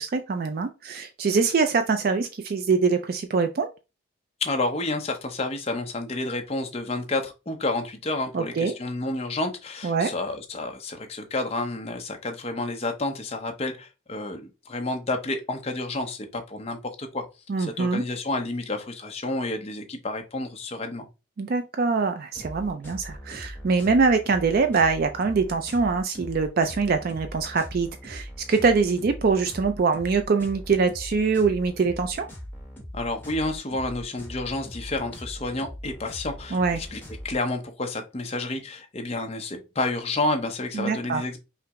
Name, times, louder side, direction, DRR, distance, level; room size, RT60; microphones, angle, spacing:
voice 1, 0.0-3.7 8.3-8.7 9.8-10.1 17.5-18.0 21.4-32.3 36.5-36.8 40.7-41.2, right 4 dB, 45° right, 7 dB, 0.3 m, -24 dB
voice 2, 4.4-17.2 17.6-21.1 32.9-37.0 37.2-41.4, left 2 dB, 30° left, 4 dB, 0.7 m, -30 dB
sound 1, 22.3-37.4, equal, 10° left, 1.1 m, -41 dB
5.6 x 2.0 x 3.5 m, 0.28 s
head